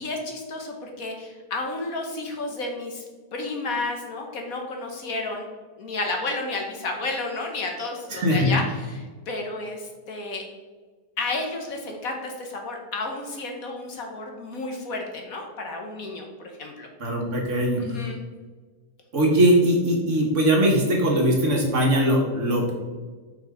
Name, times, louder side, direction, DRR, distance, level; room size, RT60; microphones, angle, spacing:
voice 1, 0.0-3.0 3.3-5.4 5.8-10.4 11.2-16.2 16.6-16.9 17.8-18.2, left 2 dB, 60° left, 2 dB, 1.4 m, -31 dB
voice 2, 8.1-8.5 17.0-18.0 19.1-22.7, equal, 45° right, 0 dB, 1.5 m, -21 dB
6.1 x 5.0 x 4.9 m, 1.4 s
omnidirectional pair, 1.8 m